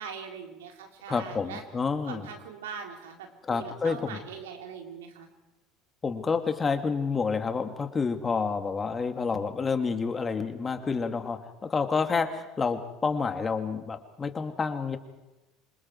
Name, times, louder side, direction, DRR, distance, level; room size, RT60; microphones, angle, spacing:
voice 1, 0.0-1.6 2.0-5.3, right 7 dB, 80° right, 3 dB, 3.8 m, -41 dB
voice 2, 1.1-2.3 3.4-4.2 6.0-15.0, left 5 dB, 25° left, 7 dB, 2.6 m, -29 dB
27.0 x 26.5 x 4.8 m, 1.0 s
hypercardioid pair, 75°, 0 cm